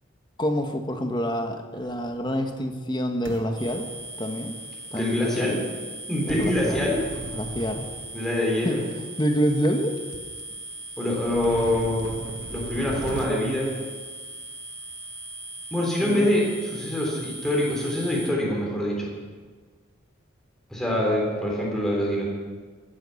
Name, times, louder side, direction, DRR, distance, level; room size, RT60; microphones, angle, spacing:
voice 1, 0.4-3.9 4.2-4.6 4.9-5.5 6.3-6.9 7.3-7.9 8.6-9.9 16.0-16.3, equal, 20° left, 5 dB, 1.2 m, -27 dB
sound 1, 1.7-2.4 3.2-4.5 6.3-8.4 9.2-9.3 9.8-9.9 10.1-10.4 11.2-13.3, right 2 dB, 80° right, 1.0 m, -38 dB
sound 2, 3.5-18.3, right 1 dB, 35° right, 4.0 m, -39 dB
voice 2, 4.9-5.6 6.1-7.0 8.1-8.8 11.0-12.1 12.5-13.7 15.7-19.1 20.7-22.3, left 1 dB, ahead, -3 dB, 3.4 m, -25 dB
15.0 x 9.2 x 7.1 m, 1.5 s
head